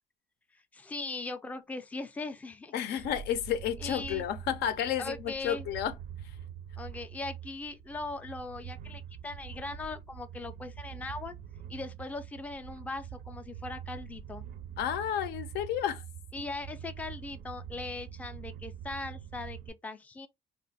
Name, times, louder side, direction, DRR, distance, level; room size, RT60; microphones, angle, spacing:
voice 1, 0.7-3.1 3.8-4.2 5.0-5.6 6.8-11.3 11.7-14.4 16.3-20.3, left 3 dB, 10° left, 0.4 m, -40 dB
voice 2, 2.7-5.9 14.8-16.0, left 10 dB, 75° left, 0.5 m, -31 dB
sound 1, 3.0-19.7, right 9 dB, 65° right, 0.5 m, -45 dB
2.4 x 2.2 x 4.0 m
cardioid pair, 110°, 17 cm